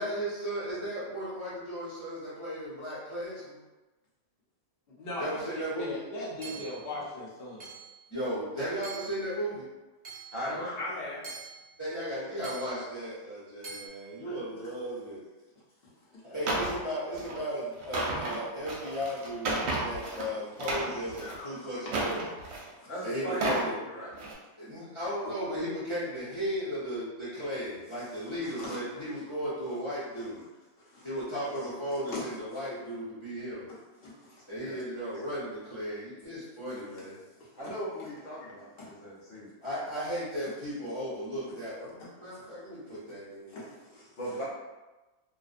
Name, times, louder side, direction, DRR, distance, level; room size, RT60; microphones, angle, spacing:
voice 1, 0.0-3.6 5.2-6.0 8.1-9.6 11.8-15.2 16.2-22.2 23.0-23.7 24.6-30.4 31.0-33.7 34.5-37.2 39.6-43.5, equal, 25° left, -12 dB, 0.8 m, -35 dB
voice 2, 5.0-7.7 10.4-11.3 14.2-14.6 16.1-16.2 21.1-21.8 22.8-22.9 28.0-28.8 30.8-31.1 31.5-32.4 33.7-34.4 35.1-35.2 37.4-37.5 38.4-38.9 42.0-42.4 43.5-44.4, left 1 dB, 55° left, -7 dB, 1.0 m, -41 dB
Hammer / Chink clink, 6.4-6.9 7.6-8.0 8.8-9.3 10.0-10.4 11.2-11.7 12.4-12.8 13.6-13.9, right 5 dB, 35° right, 0.6 m, -44 dB
voice 3, 10.3-10.6 16.3-16.4 22.9-24.1 31.2-31.3 34.6-34.8 37.6-39.5 44.2-44.4, equal, 80° left, -8 dB, 1.3 m, -39 dB
sound 1, 16.5-16.8 17.1-17.4 17.8-20.3 20.6-21.4 21.9-22.7 23.2-23.7 24.1-24.3, right 2 dB, 65° right, 0.8 m, -32 dB
2.5 x 2.1 x 2.4 m, 1.1 s
omnidirectional pair, 1.3 m